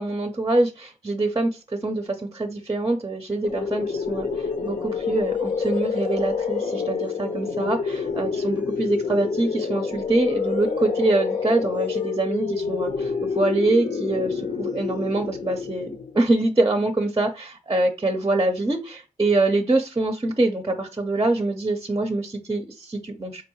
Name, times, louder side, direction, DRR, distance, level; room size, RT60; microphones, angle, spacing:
voice 1, 0.0-23.4, right 2 dB, 25° right, 5 dB, 0.6 m, -24 dB
sound 1, 3.4-16.2, left 5 dB, 65° left, 0.8 m, -28 dB
4.0 x 2.6 x 2.9 m, 0.31 s
cardioid pair, 45°, 14 cm